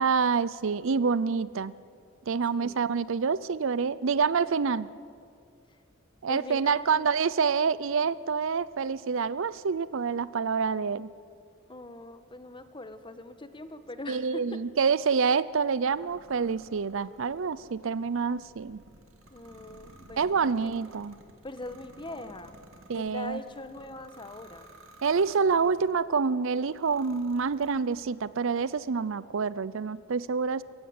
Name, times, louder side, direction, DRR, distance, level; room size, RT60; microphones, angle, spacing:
voice 1, 0.0-1.7 2.3-4.9 6.2-11.1 14.1-18.8 20.2-21.2 22.9-23.4 25.0-30.6, right 5 dB, 65° right, 18 dB, 0.5 m, -27 dB
voice 2, 2.5-2.9 6.3-7.0 11.7-14.6 19.3-20.3 20.6-20.7 21.4-22.6 22.9-24.7, left 2 dB, 25° left, 10 dB, 1.3 m, -42 dB
sound 1, 15.7-26.0 26.6-28.2, right 1 dB, 90° right, 2.4 m, -55 dB
23.5 x 15.5 x 9.6 m, 2.4 s
head